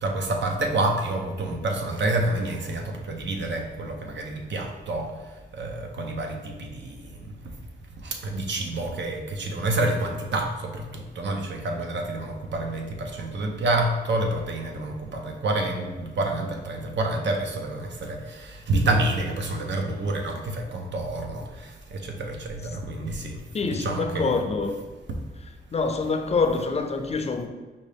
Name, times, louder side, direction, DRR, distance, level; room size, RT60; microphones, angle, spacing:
voice 1, 0.0-5.1 5.5-7.3 8.0-24.4 25.1-25.2, right 2 dB, 85° right, 2 dB, 0.7 m, -28 dB
voice 2, 23.5-24.7 25.7-27.5, left 4 dB, 35° left, 6 dB, 0.4 m, -25 dB
5.2 x 2.7 x 3.4 m, 1.3 s
wide cardioid pair, 145°, 18 cm